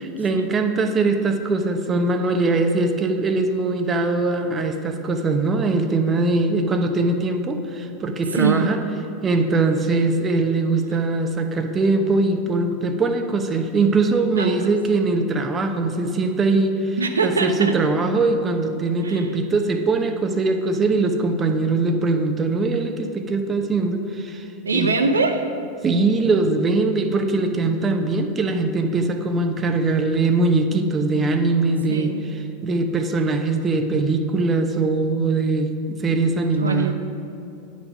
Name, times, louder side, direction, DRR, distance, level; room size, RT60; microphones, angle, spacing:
voice 1, 0.2-8.8 9.2-24.5 24.7-24.9 25.8-32.1 32.6-36.9, right 3 dB, 25° right, 6 dB, 0.8 m, -21 dB
voice 2, 8.3-8.7 14.4-14.5 17.0-17.8 19.0-19.3 24.6-25.4 31.9-32.3 36.6-36.9, right 4 dB, 80° right, 6 dB, 0.6 m, -22 dB
9.9 x 6.2 x 6.2 m, 2.7 s
figure-of-eight pair, 85°, 0 cm